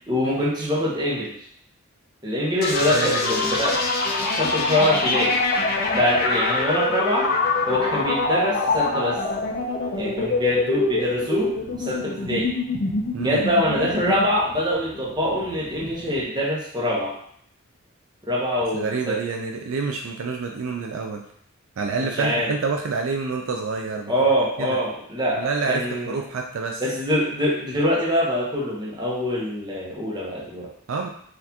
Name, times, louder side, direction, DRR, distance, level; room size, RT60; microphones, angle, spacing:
voice 1, 0.1-1.3 2.2-3.8 4.3-5.4 5.9-7.3 7.7-9.2 9.9-11.5 11.8-12.5 13.2-17.1 18.2-19.2 22.2-22.5 24.1-26.1 26.8-30.7, equal, 20° right, -5 dB, 0.9 m, -24 dB
sound 1, 2.6-16.2, left 3 dB, 45° left, 0.5 m, -24 dB
voice 2, 2.9-3.3 13.1-13.4 18.7-21.2 21.8-24.1 24.6-24.8 25.4-26.8 30.9-31.1, right 4 dB, 65° right, 2 dB, 0.4 m, -27 dB
4.2 x 2.5 x 2.8 m, 0.65 s
head